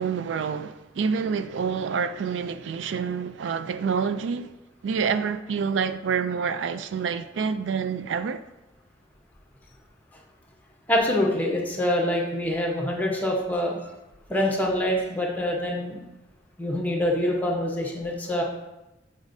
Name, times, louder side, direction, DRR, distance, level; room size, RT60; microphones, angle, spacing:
voice 1, 0.0-4.5 4.8-8.4, right 6 dB, 90° right, 0.3 m, -27 dB
voice 2, 10.9-13.8 14.3-16.0 16.6-18.4, left 1 dB, 10° left, 0.9 m, -25 dB
7.1 x 5.1 x 2.6 m
head